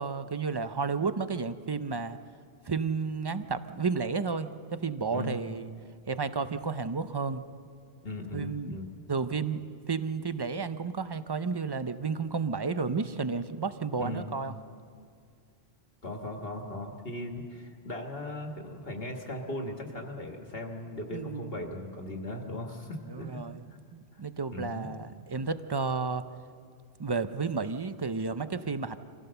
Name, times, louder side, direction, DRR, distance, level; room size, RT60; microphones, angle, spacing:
voice 1, 0.0-2.2 2.7-5.7 6.1-7.4 8.3-8.8 9.1-9.6 9.9-14.5 21.1-21.6 23.1-23.6 23.9-26.2 27.0-29.0, right 4 dB, 35° right, 11 dB, 0.4 m, -32 dB
voice 2, 8.0-8.9 14.0-14.3 16.0-23.4 23.7-23.8 24.1-24.2 24.5-24.9, left 1 dB, 55° left, 3 dB, 1.7 m, -38 dB
25.0 x 16.0 x 6.8 m, 2.3 s
omnidirectional pair, 1.2 m